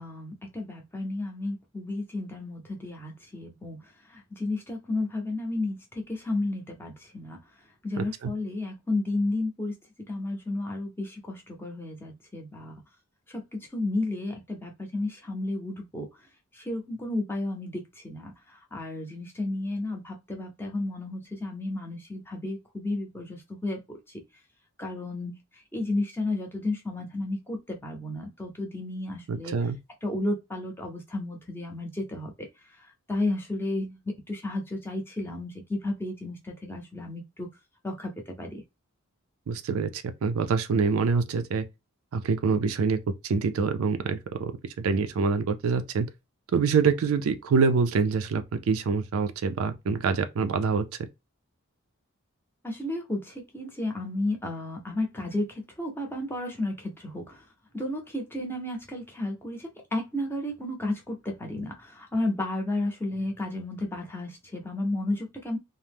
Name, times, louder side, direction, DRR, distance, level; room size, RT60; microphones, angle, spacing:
voice 1, 0.0-7.4 7.8-9.7 10.1-12.8 13.3-16.1 16.5-24.0 24.8-25.3 25.7-29.5 30.0-32.5 32.8-37.5 37.8-38.6 52.6-57.5 57.7-65.6, left 2 dB, 10° left, 0.6 m, -32 dB
voice 2, 8.0-8.3 29.3-29.8 39.5-41.6 42.1-44.5 44.8-46.1 46.5-50.8, right 5 dB, 70° right, 0.4 m, -25 dB
2.7 x 2.0 x 3.4 m
head